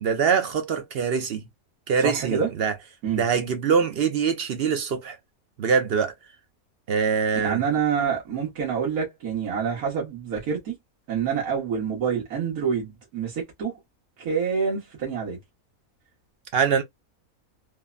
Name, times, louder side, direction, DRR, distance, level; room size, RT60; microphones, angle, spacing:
voice 1, 0.0-1.4 1.9-2.7 3.1-5.2 5.6-6.1 6.9-7.6 16.5-16.8, right 6 dB, 60° right, 0.7 m, -23 dB
voice 2, 2.0-2.5 3.0-3.2 7.4-10.7 11.1-13.7 14.2-15.4, right 6 dB, 85° right, 1.6 m, -27 dB
3.4 x 2.1 x 2.3 m
omnidirectional pair, 1.5 m